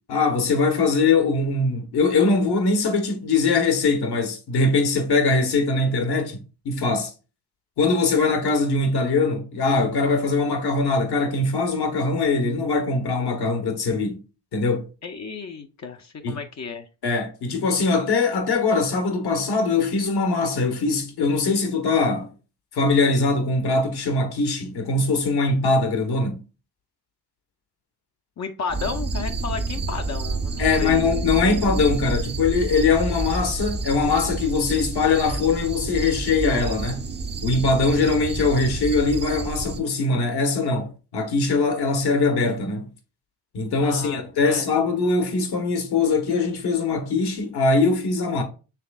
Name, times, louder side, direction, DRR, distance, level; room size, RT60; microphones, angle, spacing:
voice 1, 0.1-7.1 7.8-14.2 14.5-14.9 16.2-16.4 17.0-22.3 22.7-26.4 30.6-37.1 37.4-42.9 43.5-48.4, left 3 dB, 60° left, 1.3 m, -22 dB
voice 2, 15.0-16.9 28.4-31.0 43.8-44.7, left 5 dB, 40° left, 0.7 m, -33 dB
sound 1, 28.7-39.8, right 3 dB, 25° right, 0.6 m, -29 dB
5.9 x 3.3 x 2.4 m
supercardioid pair, 60°, 43 cm